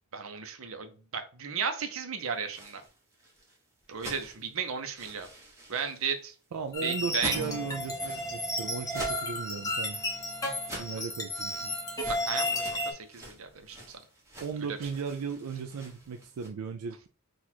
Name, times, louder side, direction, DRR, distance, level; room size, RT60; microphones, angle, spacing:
voice 1, 0.1-2.8 3.9-5.3 5.7-6.3 6.8-7.4 10.7-10.8 12.0-13.8, right 6 dB, 65° right, 0.7 m, -34 dB
sound 1, 2.3-16.5, right 1 dB, 15° right, 1.2 m, -46 dB
voice 2, 6.5-10.0 10.8-11.7 14.4-17.1, right 5 dB, 85° right, 0.4 m, -36 dB
sound 2, 6.7-12.9, left 1 dB, 15° left, 1.0 m, -33 dB
4.0 x 2.4 x 4.4 m
head